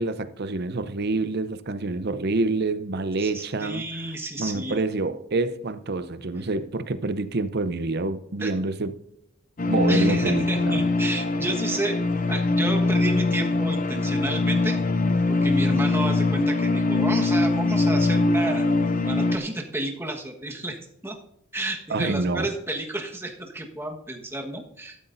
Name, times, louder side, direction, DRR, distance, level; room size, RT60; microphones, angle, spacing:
voice 1, 0.0-3.8 4.4-8.9 9.7-10.8 21.9-22.5, right 3 dB, 50° right, 0.7 m, -27 dB
voice 2, 3.2-4.8 8.4-8.5 9.9-14.8 15.3-18.6 19.0-20.8 21.0-21.2 21.5-25.0, right 1 dB, 10° right, 1.4 m, -31 dB
sound 1, 9.6-19.4, left 2 dB, 40° left, 0.6 m, -22 dB
14.0 x 12.0 x 2.7 m
head